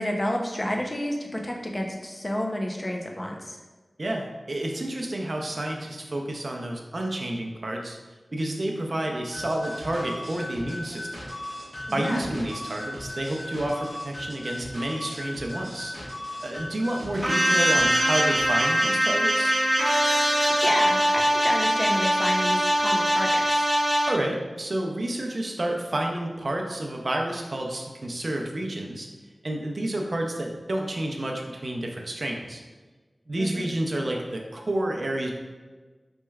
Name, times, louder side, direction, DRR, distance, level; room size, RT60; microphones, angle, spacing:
voice 1, 0.0-3.6 11.9-12.3 20.5-23.7 33.4-33.7, left 1 dB, 30° left, 1 dB, 0.6 m, -30 dB
voice 2, 4.0-8.0 8.3-11.1 11.9-15.9 16.4-19.6 24.1-29.1 29.4-32.6 33.3-35.3, right 1 dB, 60° right, 1 dB, 0.5 m, -30 dB
sound 1, 9.3-18.9, left 1 dB, 70° left, 1.4 m, -37 dB
sound 2, 17.2-24.1, equal, 20° right, 0.7 m, -22 dB
4.4 x 3.1 x 2.3 m, 1.3 s
wide cardioid pair, 55°, 0 cm